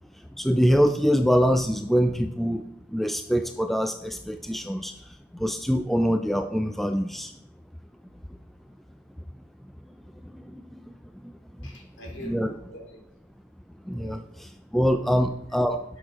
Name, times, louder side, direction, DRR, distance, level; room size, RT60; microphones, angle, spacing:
voice 1, 0.4-7.3 10.2-10.9 11.2-11.7 12.2-12.5 13.8-15.8, equal, ahead, 7 dB, 0.3 m, -25 dB
voice 2, 11.6-13.0 13.9-14.5 14.8-15.0, equal, 60° left, 0 dB, 2.6 m, -44 dB
11.0 x 6.1 x 3.6 m, 0.79 s
head